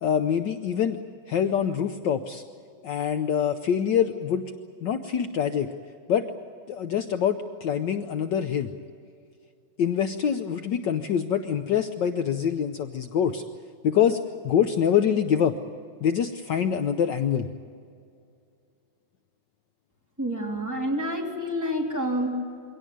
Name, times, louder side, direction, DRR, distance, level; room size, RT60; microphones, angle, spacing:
voice 1, 0.0-1.0 1.3-2.4 2.8-4.5 4.8-5.7 6.1-6.3 6.7-8.7 9.8-13.4 13.8-14.2 14.4-15.5 16.0-17.5, left 8 dB, 65° left, 8 dB, 1.3 m, -25 dB
voice 2, 20.2-22.3, equal, 10° right, -2 dB, 3.3 m, -28 dB
23.5 x 17.5 x 9.3 m, 2.4 s
omnidirectional pair, 2.3 m